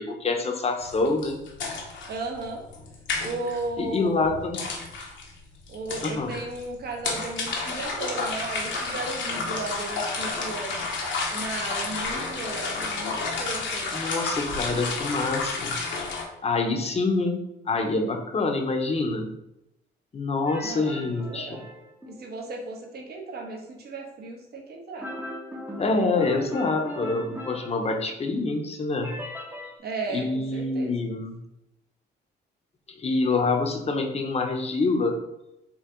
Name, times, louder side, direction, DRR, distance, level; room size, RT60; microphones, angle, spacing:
voice 1, 0.0-1.4 3.8-4.6 6.0-6.3 13.9-15.8 16.4-17.4 17.7-19.3 20.1-21.6 25.8-29.2 30.1-31.4 33.0-35.1, left 3 dB, 30° left, 3 dB, 0.8 m, -26 dB
sound 1, 0.8-16.2, left 3 dB, 70° left, 1.0 m, -31 dB
voice 2, 2.1-2.6 3.2-4.4 5.7-10.8 11.3-14.1 20.6-21.6 22.1-25.1 29.8-30.3 30.5-30.9, right 3 dB, 55° right, 0 dB, 1.1 m, -35 dB
sound 2, 20.5-22.3 25.0-28.3 29.0-29.8, left 1 dB, 10° right, 0.7 m, -38 dB
4.5 x 2.8 x 3.8 m, 0.87 s
cardioid pair, 90°, 20 cm